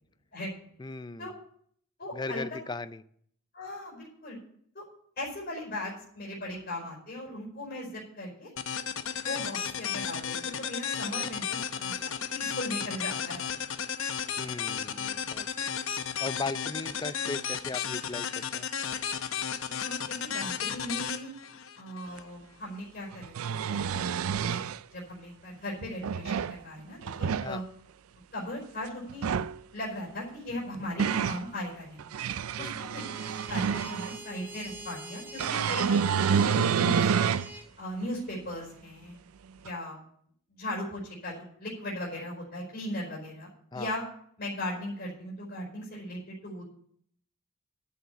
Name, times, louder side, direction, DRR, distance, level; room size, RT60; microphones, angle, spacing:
voice 1, 0.8-1.4 2.1-3.0 14.4-15.5 16.2-18.7 27.4-27.6 32.6-32.8 43.7-43.9, left 3 dB, 20° left, 14 dB, 0.4 m, -37 dB
voice 2, 2.0-2.4 3.5-4.4 4.7-4.8 5.2-8.5 9.2-13.4 19.6-21.3 21.8-24.0 24.5-24.6 24.9-27.6 28.3-29.3 29.7-32.0 32.6-33.0 33.5-37.3 37.8-39.2 39.6-40.0 40.5-44.0 44.4-46.6, left 1 dB, 45° left, -5 dB, 4.5 m, -38 dB
clubing morning, 8.6-22.2, left 7 dB, 70° left, 0.9 m, -34 dB
sound 1, 22.2-22.3 23.1-24.8 25.8-26.6 27.0-27.5 29.1-29.6 30.5-31.4 32.0-34.2 35.4-37.5 38.0-38.1 39.7-39.8, right 7 dB, 85° right, 0.4 m, -28 dB
sound 2, 33.0-37.7, right 1 dB, 10° right, 1.4 m, -45 dB
10.0 x 7.2 x 8.3 m, 0.64 s
head